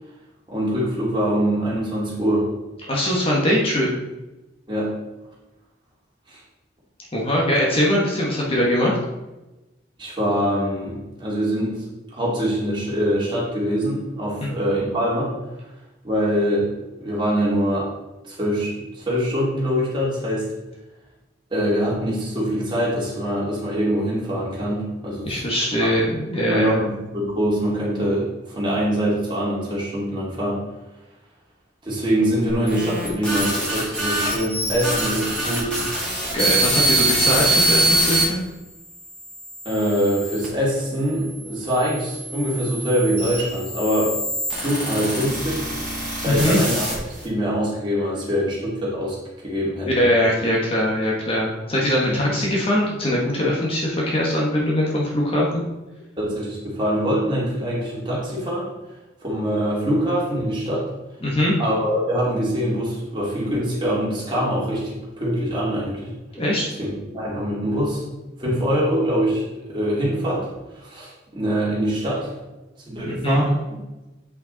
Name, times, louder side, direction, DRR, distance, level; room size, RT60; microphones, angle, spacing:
voice 1, 0.5-2.5 4.7-4.9 6.3-6.4 10.0-11.8 12.1-15.3 16.0-16.7 17.0-17.9 18.2-20.5 21.5-25.4 25.8-26.0 26.4-30.6 31.8-35.8 39.6-44.3 44.6-45.7 46.2-49.9 52.0-52.2 56.2-58.7 59.2-60.9 61.6-66.1 66.8-68.1 68.4-69.4 69.7-72.3 72.9-73.6, equal, 25° right, -6 dB, 2.6 m, -24 dB
voice 2, 2.9-3.9 7.1-9.0 14.4-14.5 25.2-26.8 36.3-38.4 46.3-46.6 49.9-55.6 61.2-61.5 66.3-66.7 73.1-73.5, left 1 dB, 30° left, -3 dB, 1.3 m, -21 dB
sound 1, 32.5-38.2 38.9-40.5 41.3-47.2, right 1 dB, 5° left, 2.7 m, -24 dB
8.0 x 5.6 x 4.0 m, 1.0 s
head